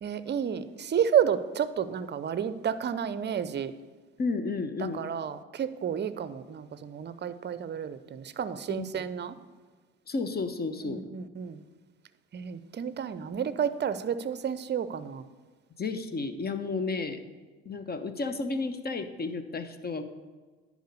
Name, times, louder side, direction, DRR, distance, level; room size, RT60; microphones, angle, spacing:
voice 1, 0.0-3.7 4.8-9.4 10.8-11.6 12.3-15.2, right 8 dB, 35° right, 14 dB, 0.6 m, -31 dB
voice 2, 4.2-5.0 8.7-9.1 10.1-11.0 15.8-17.2 17.6-20.0, left 3 dB, 30° left, 10 dB, 1.0 m, -32 dB
10.5 x 5.0 x 6.6 m, 1.4 s
hypercardioid pair, 60°, 32 cm